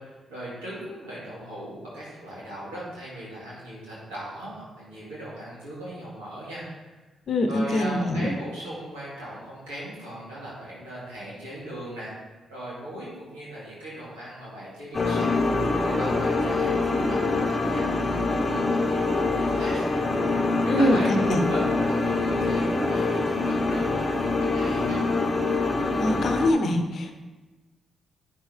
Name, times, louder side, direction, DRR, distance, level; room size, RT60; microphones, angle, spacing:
voice 1, 0.3-6.9 7.5-12.1 12.5-19.8 20.6-25.0, right 1 dB, 90° right, -8 dB, 2.6 m, -38 dB
voice 2, 7.3-8.3 20.7-21.0 21.3-21.4 26.0-27.1, left 1 dB, 60° left, 5 dB, 0.8 m, -23 dB
sound 1, 14.9-26.5, left 3 dB, 35° left, 1.0 m, -25 dB
8.9 x 6.2 x 3.5 m, 1.2 s
hypercardioid pair, 45°, 0 cm